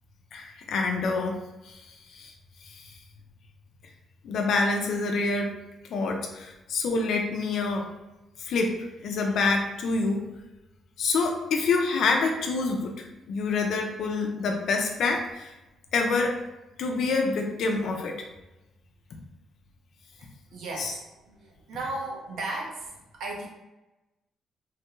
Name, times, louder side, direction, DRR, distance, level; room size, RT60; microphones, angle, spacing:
voice 1, 0.3-1.4 1.6-2.3 2.6-2.9 4.2-5.5 5.9-7.8 8.4-10.2 11.0-15.5 15.9-16.4 16.8-18.1 20.8-20.9, left 3 dB, 70° left, 2 dB, 0.6 m, -27 dB
voice 2, 20.5-23.5, right 2 dB, 75° right, -2 dB, 0.9 m, -35 dB
3.3 x 2.3 x 3.0 m, 1.0 s
cardioid pair, 90°, 0 cm